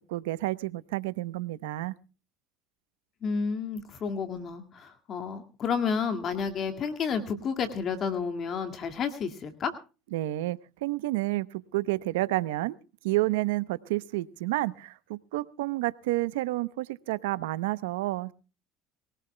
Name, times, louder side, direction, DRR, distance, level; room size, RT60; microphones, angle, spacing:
voice 1, 0.1-1.9 10.1-12.8 13.0-18.3, right 18 dB, 85° right, 16 dB, 0.8 m, -30 dB
voice 2, 3.2-9.7, left 6 dB, 45° left, 7 dB, 2.0 m, -31 dB
23.5 x 18.0 x 2.2 m, 0.33 s
supercardioid pair, 85°, 0 cm